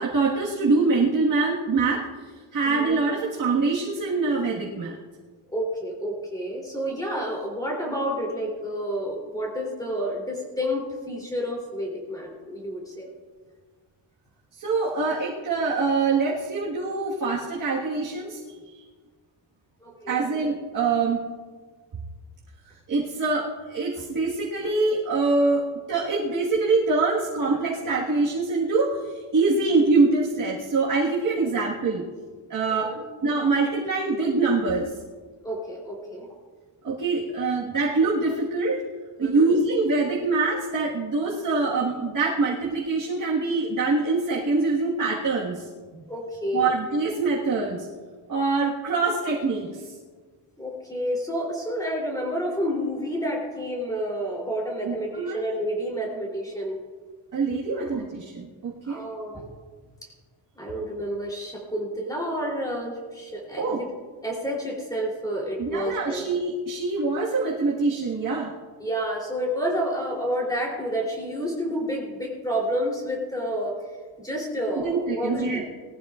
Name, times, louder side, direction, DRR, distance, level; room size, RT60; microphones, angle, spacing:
voice 1, 0.0-2.0 2.5-4.9 14.5-18.4 20.1-21.2 22.9-32.0 32.5-33.0 33.2-34.9 36.8-38.8 39.2-45.7 46.5-47.9 48.3-49.9 54.8-55.4 57.3-59.0 63.6-63.8 65.6-68.5 74.8-75.6, right 3 dB, 40° right, -4 dB, 1.6 m, -24 dB
voice 2, 5.5-13.1 19.8-20.2 32.7-33.0 35.4-36.3 39.2-39.5 46.1-46.7 50.6-56.8 57.4-57.9 58.8-59.5 60.5-63.9 64.2-66.2 68.8-73.8 74.2-75.6, equal, 5° left, -2 dB, 3.1 m, -30 dB
20.0 x 14.0 x 2.4 m, 1.5 s
wide cardioid pair, 175°, 49 cm